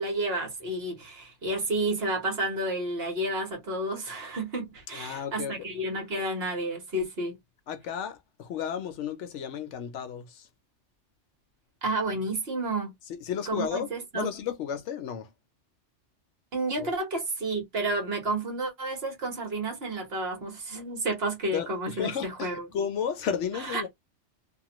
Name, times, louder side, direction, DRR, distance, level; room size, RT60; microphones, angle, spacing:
voice 1, 0.0-7.3 11.8-12.9 13.5-14.3 16.5-22.7 23.7-23.9, right 2 dB, 55° right, 1.4 m, -31 dB
voice 2, 4.9-5.7 7.7-10.5 13.1-13.9 14.1-15.3 16.8-16.9 21.5-23.9, left 8 dB, 75° left, 0.9 m, -33 dB
3.0 x 2.2 x 2.9 m
omnidirectional pair, 1.3 m